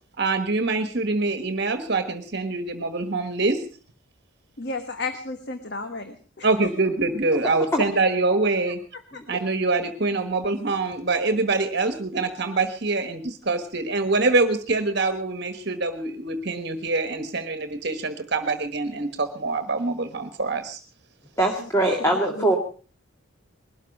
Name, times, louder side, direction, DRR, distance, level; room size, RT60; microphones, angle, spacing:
voice 1, 0.2-3.6 6.4-8.8 9.3-20.8, right 3 dB, 55° right, 9 dB, 1.4 m, -25 dB
voice 2, 4.6-6.7 8.9-9.2 11.3-11.4 21.6-21.7 22.1-22.5, left 3 dB, 55° left, 7 dB, 1.4 m, -34 dB
voice 3, 21.4-22.6, right 1 dB, 15° left, 2 dB, 1.9 m, -22 dB
21.0 x 13.0 x 5.3 m, 0.39 s
head